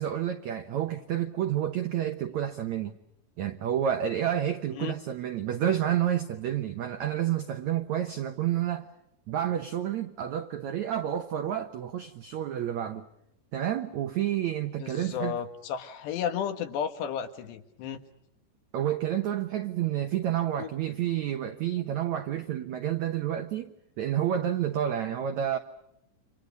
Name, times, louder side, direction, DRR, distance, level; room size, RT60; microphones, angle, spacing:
voice 1, 0.0-3.0 3.4-8.9 9.3-13.0 13.5-15.4 18.7-25.6, right 10 dB, 90° right, 1.6 m, -29 dB
voice 2, 14.8-18.0 20.6-20.7, left 8 dB, 80° left, 3.7 m, -33 dB
30.0 x 26.0 x 5.3 m
omnidirectional pair, 4.9 m